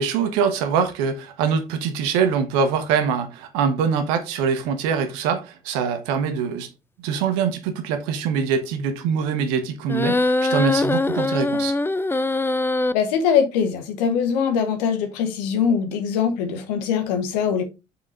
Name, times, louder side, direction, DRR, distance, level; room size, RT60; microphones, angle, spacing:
voice 1, 0.0-6.7 7.0-11.8, right 6 dB, 70° right, 1.3 m, -23 dB
sound 1, 9.9-12.9, left 2 dB, 10° left, 0.5 m, -22 dB
voice 2, 12.9-17.6, left 7 dB, 75° left, 1.5 m, -22 dB
7.4 x 5.0 x 3.8 m
figure-of-eight pair, 45°, 21 cm